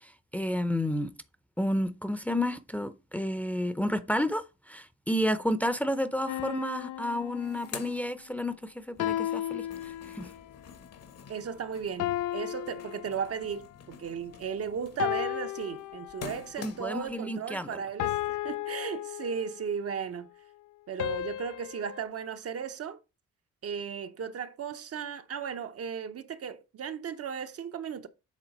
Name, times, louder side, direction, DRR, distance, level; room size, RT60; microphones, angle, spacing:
voice 1, 0.0-1.1 1.6-10.3 16.6-17.8, left 1 dB, 5° left, 0.7 m, -31 dB
sound 1, 6.3-7.9 9.0-10.5 12.0-13.7 15.0-16.5 18.0-19.7 21.0-22.0, left 14 dB, 75° left, 0.5 m, -34 dB
sound 2, 6.7-6.8 7.1-8.8 9.2-17.1, left 6 dB, 55° left, 1.2 m, -48 dB
voice 2, 11.3-20.3 20.9-23.0 23.6-28.1, right 7 dB, 50° right, 0.8 m, -36 dB
7.4 x 3.8 x 5.3 m
cardioid pair, 90°, 30 cm